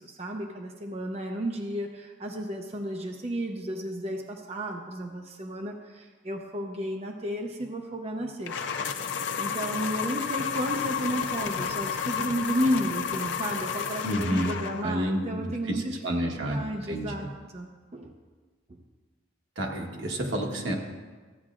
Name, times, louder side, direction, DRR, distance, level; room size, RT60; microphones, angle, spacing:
voice 1, 0.2-5.7 6.2-8.9 9.4-16.0 16.3-17.7 17.9-18.1, equal, 30° right, 2 dB, 0.5 m, -32 dB
sound 1, 8.5-15.0, left 6 dB, 65° left, 0.5 m, -31 dB
voice 2, 14.0-14.5 14.8-16.6 16.9-17.3 19.6-20.8, equal, 80° right, 0 dB, 1.2 m, -30 dB
14.5 x 8.5 x 2.5 m, 1.4 s
head